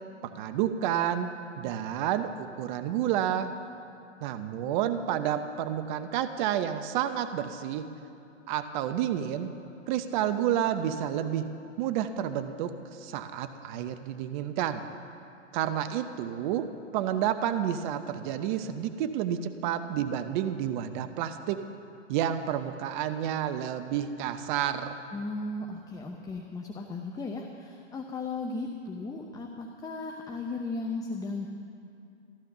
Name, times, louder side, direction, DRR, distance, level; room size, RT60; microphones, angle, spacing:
voice 1, 0.2-1.3 1.6-3.5 4.2-7.9 8.5-9.5 9.9-11.5 11.8-14.8 15.5-16.7 16.9-21.6 22.1-25.0, right 10 dB, 40° right, 10 dB, 0.8 m, -30 dB
voice 2, 25.1-31.5, left 3 dB, 10° left, 2 dB, 0.8 m, -36 dB
15.0 x 13.0 x 6.7 m, 2.6 s
hypercardioid pair, 115°, 37 cm